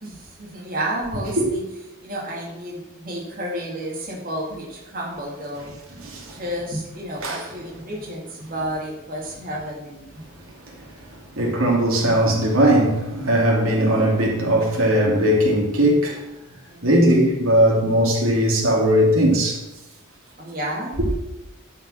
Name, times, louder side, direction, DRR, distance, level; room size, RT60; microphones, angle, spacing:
voice 1, 0.0-1.6 2.0-5.7 6.3-10.2 16.7-16.9 20.4-21.0, right 1 dB, 40° right, 2.3 m, -31 dB
voice 2, 6.0-6.4 7.2-7.4 11.3-16.2 16.8-19.6, right 1 dB, 75° right, 2.8 m, -19 dB
11.0 x 5.5 x 6.4 m
head